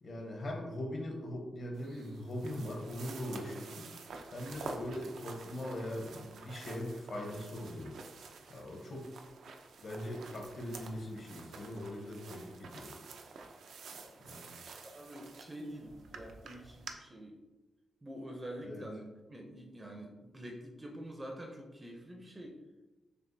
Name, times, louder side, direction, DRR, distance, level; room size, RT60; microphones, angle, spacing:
voice 1, 0.0-3.9 4.3-7.9 8.5-9.1 9.8-12.9 14.3-14.5 18.6-18.8, left 1 dB, 45° left, 1 dB, 0.8 m, -41 dB
sound 1, 1.7-16.9, right 4 dB, 80° right, 0.4 m, -49 dB
voice 2, 13.9-17.4 18.0-22.6, right 1 dB, 15° right, 1 dB, 0.5 m, -47 dB
6.5 x 2.4 x 2.6 m, 1.1 s
wide cardioid pair, 165°, 0 cm